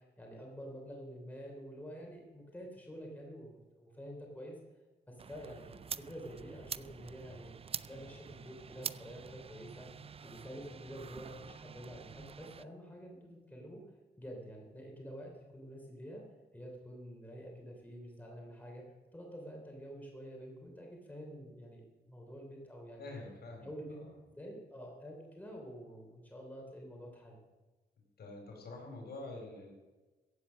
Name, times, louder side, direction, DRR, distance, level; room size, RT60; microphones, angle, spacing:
voice 1, 0.0-4.6 5.1-7.5 7.9-9.9 10.2-13.8 14.2-16.2 16.5-18.8 19.1-23.1 23.6-24.0 24.4-27.4, equal, 10° left, 0 dB, 3.3 m, -48 dB
sound 1, 5.2-12.6, right 6 dB, 35° right, 0.4 m, -46 dB
voice 2, 23.0-24.1 28.2-29.7, left 2 dB, 65° left, 0 dB, 4.8 m, -47 dB
15.0 x 8.4 x 6.4 m, 1.2 s
cardioid pair, 90°, 18 cm